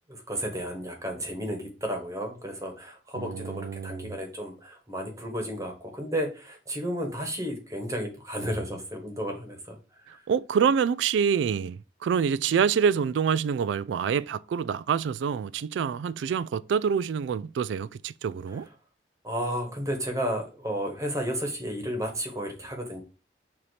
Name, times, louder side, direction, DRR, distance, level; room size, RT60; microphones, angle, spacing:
voice 1, 0.1-9.8 10.1-10.2 18.5-18.6 19.2-23.0, equal, 20° right, 1.4 m, -33 dB
voice 2, 3.1-4.1 10.3-18.7, right 7 dB, 90° right, 0.3 m, -26 dB
6.7 x 2.9 x 4.9 m
head